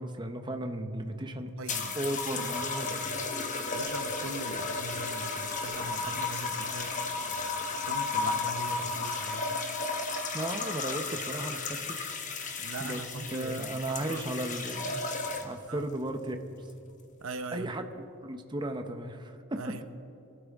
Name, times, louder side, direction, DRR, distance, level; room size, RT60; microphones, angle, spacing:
voice 1, 0.0-1.5 1.9-2.9 10.3-12.1 12.8-13.0 13.3-15.1 15.4-16.4 17.5-17.8 18.2-19.8, right 1 dB, 20° right, 6 dB, 0.8 m, -35 dB
voice 2, 1.3-1.9 2.8-3.1 3.7-7.2 7.8-9.6 12.6-14.3 15.7-15.9 17.2-17.7 19.6-19.8, right 3 dB, 75° right, 9 dB, 0.8 m, -41 dB
sound 1, 1.7-15.7 16.6-16.9, left 4 dB, 35° left, 1.0 m, -34 dB
25.0 x 12.5 x 3.6 m, 2.8 s
head